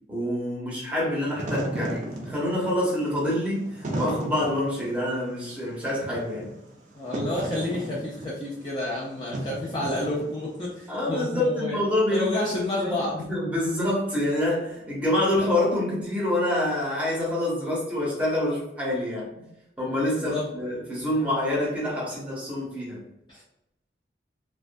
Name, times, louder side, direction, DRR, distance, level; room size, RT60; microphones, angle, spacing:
voice 1, 0.1-6.6 10.9-19.5 19.8-23.0, left 1 dB, 10° right, -6 dB, 0.8 m, -27 dB
Wind / Fire, 1.1-10.7, right 1 dB, 40° right, 0.5 m, -34 dB
voice 2, 6.9-11.8 12.1-13.2 20.1-20.5 23.3-23.4, left 1 dB, 25° left, -6 dB, 0.4 m, -30 dB
2.3 x 2.2 x 2.5 m, 0.84 s
head